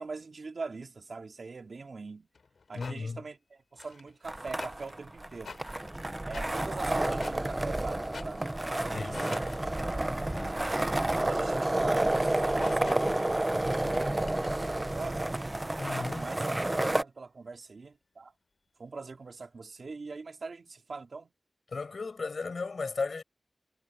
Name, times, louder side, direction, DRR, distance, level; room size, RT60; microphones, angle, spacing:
voice 1, 0.0-2.3 2.7-5.6 6.3-9.5 10.6-10.9 11.2-13.1 14.9-15.3 16.2-18.3 18.8-21.3, right 4 dB, 70° right, 3.2 m, -42 dB
sound 1, 2.3-3.0 3.7-9.6 10.1-14.7, left 4 dB, 85° left, 3.6 m, -49 dB
voice 2, 2.7-3.2 8.9-9.2 10.3-10.7 15.8-16.3 21.7-23.2, left 4 dB, 70° left, 7.3 m, -35 dB
sound 2, 4.3-17.0, right 1 dB, 25° right, 0.9 m, -30 dB
wide cardioid pair, 70°, 0 cm